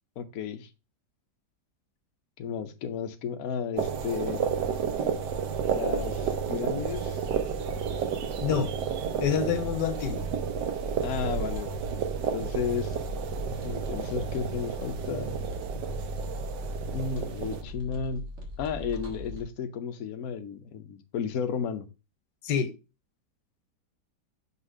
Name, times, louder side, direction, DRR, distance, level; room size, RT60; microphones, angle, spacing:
voice 1, 0.2-0.7 2.4-4.5 5.7-7.2 8.5-8.6 11.0-11.8 12.3-13.0 13.6-15.4 16.9-18.2 18.6-21.9, left 6 dB, 65° left, 1.0 m, -33 dB
sound 1, 3.8-17.6, right 7 dB, 90° right, 1.4 m, -32 dB
sound 2, 4.1-19.4, left 1 dB, 45° right, 1.7 m, -40 dB
voice 2, 8.4-8.7 9.2-10.3 22.4-22.7, left 7 dB, 80° left, 1.4 m, -27 dB
5.7 x 4.2 x 4.8 m
omnidirectional pair, 1.8 m